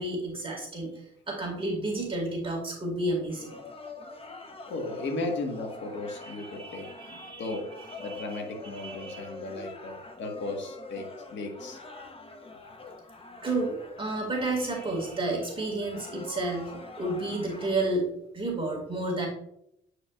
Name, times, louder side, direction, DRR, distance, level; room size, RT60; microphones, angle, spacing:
voice 1, 0.0-3.6 6.2-7.6 7.9-8.4 8.7-9.3 13.4-16.7 17.0-18.1 18.3-19.3, right 2 dB, 25° right, -1 dB, 2.1 m, -31 dB
sound 1, 3.3-17.8, left 3 dB, 30° left, 0.8 m, -45 dB
voice 2, 4.7-6.9 7.4-7.7 8.0-12.1, left 2 dB, 65° left, 3 dB, 1.5 m, -36 dB
8.4 x 4.9 x 2.4 m, 0.77 s
cardioid pair, 90°, 20 cm